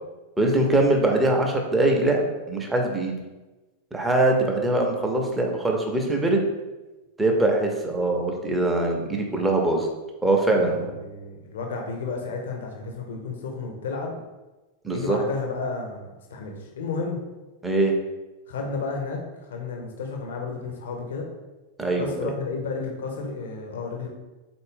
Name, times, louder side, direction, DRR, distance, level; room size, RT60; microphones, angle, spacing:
voice 1, 0.4-2.2 2.5-3.1 3.9-6.4 7.2-9.9 10.2-10.9 14.8-15.2 17.6-18.0 21.8-22.3, right 2 dB, 10° right, 1 dB, 0.6 m, -22 dB
voice 2, 10.5-14.2 14.9-17.2 18.5-21.3 22.0-24.1, left 4 dB, 60° left, 2 dB, 0.7 m, -32 dB
3.9 x 2.5 x 3.6 m, 1.1 s
figure-of-eight pair, 90°, 0 cm